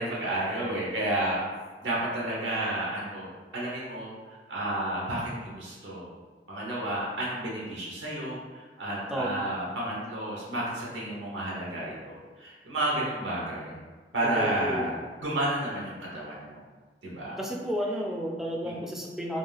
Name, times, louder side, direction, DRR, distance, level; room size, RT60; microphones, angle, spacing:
voice 1, 0.0-1.4 1.8-6.1 6.5-13.7 14.1-16.6 17.0-17.4 18.6-18.8, right 1 dB, 85° right, -5 dB, 0.7 m, -31 dB
voice 2, 14.3-14.9 17.4-19.4, equal, ahead, -1 dB, 0.3 m, -31 dB
2.5 x 2.3 x 3.2 m, 1.4 s
head